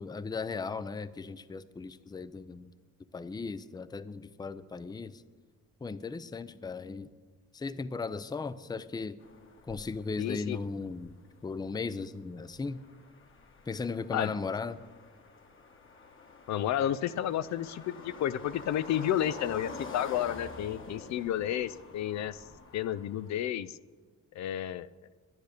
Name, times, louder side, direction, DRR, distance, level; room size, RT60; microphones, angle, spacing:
voice 1, 0.0-2.7 3.1-5.2 5.8-7.1 7.5-9.2 9.7-11.1 11.4-12.8 13.7-14.8, left 4 dB, 15° left, 15 dB, 0.5 m, -37 dB
sound 1, 9.2-23.5, left 4 dB, 40° left, 1.4 m, -48 dB
voice 2, 10.2-10.6 14.1-14.3 16.5-22.4 22.7-23.8 24.3-24.9, left 11 dB, 65° left, 16 dB, 0.5 m, -31 dB
11.0 x 10.5 x 6.6 m, 1.4 s
cardioid pair, 90°, 30 cm